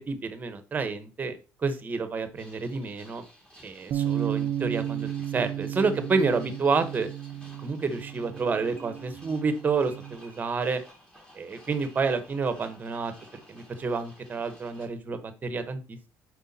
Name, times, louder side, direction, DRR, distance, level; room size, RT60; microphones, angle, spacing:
voice 1, 0.1-1.4 1.6-3.3 3.6-7.1 7.6-10.8 11.3-13.1 13.5-16.1, right 4 dB, 25° right, 9 dB, 1.0 m, -29 dB
sound 1, 2.4-14.9, equal, 10° left, 2.1 m, -54 dB
Bass guitar, 3.9-10.2, right 10 dB, 50° right, 0.4 m, -33 dB
5.6 x 4.7 x 4.1 m, 0.32 s
cardioid pair, 135°, 7 cm